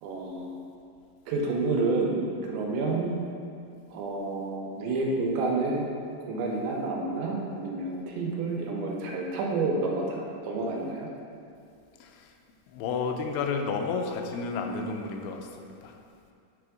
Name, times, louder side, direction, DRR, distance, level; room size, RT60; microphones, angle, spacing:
voice 1, 0.0-0.6 1.3-3.1 3.9-5.9 6.3-11.1, right 3 dB, 80° right, -1 dB, 3.0 m, -29 dB
voice 2, 12.7-15.9, left 4 dB, 85° left, 3 dB, 2.9 m, -31 dB
9.4 x 3.4 x 5.0 m, 2.4 s
omnidirectional pair, 5.2 m